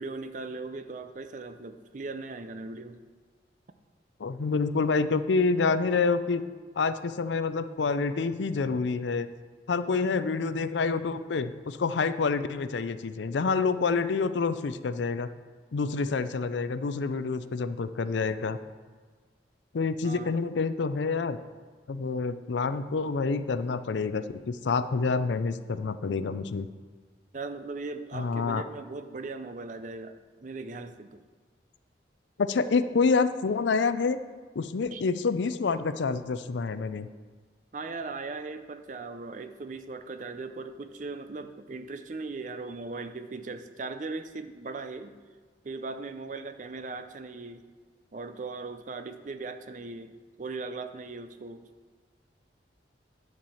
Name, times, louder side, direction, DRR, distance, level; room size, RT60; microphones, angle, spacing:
voice 1, 0.0-3.0 20.0-20.3 27.3-31.2 34.9-35.0 37.7-45.1 45.6-47.7 48.1-51.7, right 3 dB, 45° right, 9 dB, 0.5 m, -38 dB
voice 2, 4.2-6.4 6.8-9.3 9.7-15.3 15.7-18.6 19.7-21.4 21.9-26.7 28.1-28.6 32.4-34.2 34.6-37.1, left 4 dB, 75° left, 12 dB, 0.5 m, -27 dB
10.0 x 4.6 x 7.1 m, 1.5 s
head